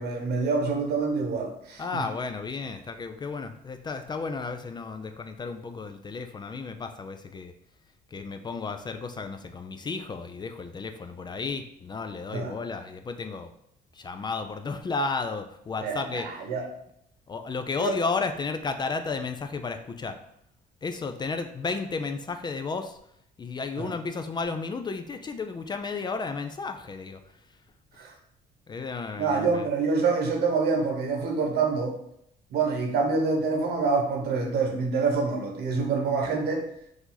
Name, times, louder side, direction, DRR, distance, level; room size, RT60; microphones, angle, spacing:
voice 1, 0.0-2.0 12.3-12.6 15.8-16.6 17.8-18.0 23.8-23.9 28.0-28.1 29.2-31.9 32.5-36.7, right 4 dB, 70° right, 3 dB, 1.1 m, -26 dB
voice 2, 1.8-7.5 8.1-13.5 14.0-16.3 17.3-20.2 20.8-23.0 23.4-27.2 28.7-29.7, left 4 dB, 25° left, 7 dB, 0.4 m, -33 dB
4.8 x 2.7 x 3.9 m, 0.73 s
cardioid pair, 110°, 17 cm